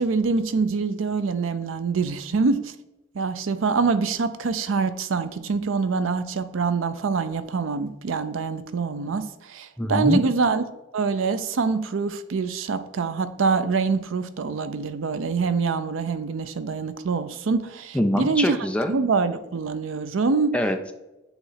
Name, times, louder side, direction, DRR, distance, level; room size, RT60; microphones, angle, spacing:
voice 1, 0.0-2.7 3.1-10.6 10.9-18.6 18.9-20.5, right 4 dB, 90° right, 12 dB, 0.5 m, -25 dB
voice 2, 9.8-10.2 17.9-18.9 20.5-20.9, equal, 5° left, 5 dB, 0.5 m, -23 dB
8.0 x 3.1 x 3.9 m, 0.99 s
head